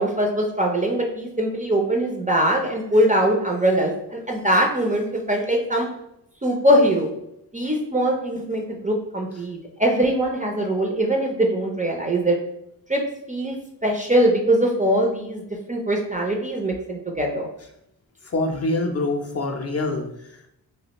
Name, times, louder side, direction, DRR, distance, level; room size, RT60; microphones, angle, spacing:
voice 1, 0.0-5.9 6.4-7.1 7.5-12.4 12.9-13.0 13.3-13.6 13.8-15.4 15.7-17.5, right 1 dB, 20° right, 1 dB, 0.4 m, -22 dB
voice 2, 18.2-20.5, left 2 dB, 35° left, 2 dB, 0.5 m, -25 dB
3.2 x 2.4 x 2.9 m, 0.79 s
cardioid pair, 80°, 41 cm